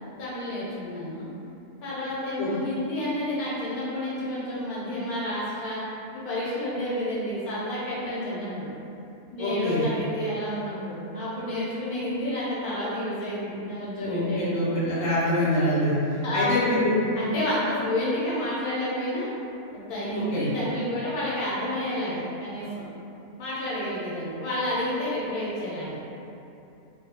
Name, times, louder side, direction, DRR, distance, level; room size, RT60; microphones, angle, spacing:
voice 1, 0.2-1.3 1.8-5.8 6.1-8.7 9.3-14.7 16.0-16.7 17.2-19.3 19.7-22.8 23.4-26.0, left 1 dB, 85° left, -8 dB, 1.2 m, -30 dB
voice 2, 9.4-9.9 14.0-16.0 16.3-17.0 20.1-20.5, left 1 dB, 60° left, -9 dB, 1.0 m, -25 dB
2.6 x 2.1 x 2.8 m, 2.7 s
omnidirectional pair, 1.5 m